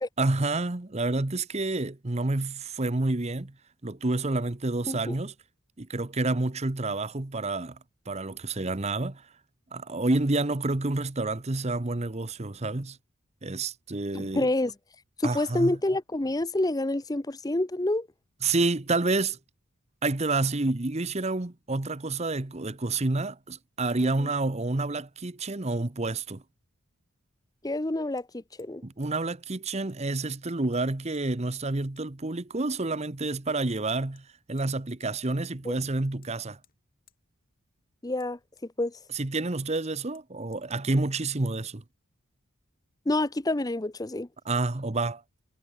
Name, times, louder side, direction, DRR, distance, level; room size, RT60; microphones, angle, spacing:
voice 1, 0.2-3.5 3.8-5.3 5.8-7.8 8.1-9.2 9.7-13.0 13.4-14.5 15.2-15.8 18.4-19.4 20.0-26.4 28.8-36.6 39.1-41.8 44.5-45.2, right 2 dB, 30° right, 1.0 m, -29 dB
voice 2, 14.1-14.7 15.2-18.1 24.2-24.3 27.6-28.8 35.6-35.8 38.0-39.0 43.1-44.3, left 1 dB, 15° left, 0.7 m, -28 dB
Hammer, 26.2-26.3 28.2-28.3 28.6-28.8 29.0-29.1 29.5-29.6 29.9-30.4 30.7-31.2 31.6-31.7 32.0-32.1 33.3-33.4 33.7-33.8 34.2-34.7 35.0-35.1 35.4-35.5 35.8-36.3 36.6-36.8 37.1-37.2 38.2-39.1 39.4-39.5 39.7-39.9 40.1-40.3 40.5-40.6 40.9-41.0, left 12 dB, 40° left, 5.5 m, -63 dB
head